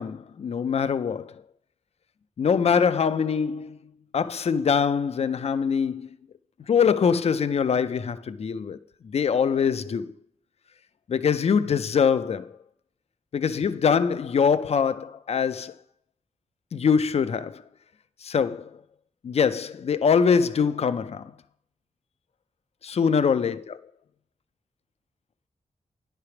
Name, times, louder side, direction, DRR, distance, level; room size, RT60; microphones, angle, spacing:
voice 1, 0.0-1.4 2.4-3.8 4.1-6.1 6.7-8.8 9.0-10.1 11.1-12.6 13.3-15.7 16.7-17.6 18.2-18.8 19.2-21.3 22.8-23.8, left 6 dB, 55° left, 0.4 m, -23 dB
9.7 x 3.3 x 5.8 m
wide cardioid pair, 80°, 13 cm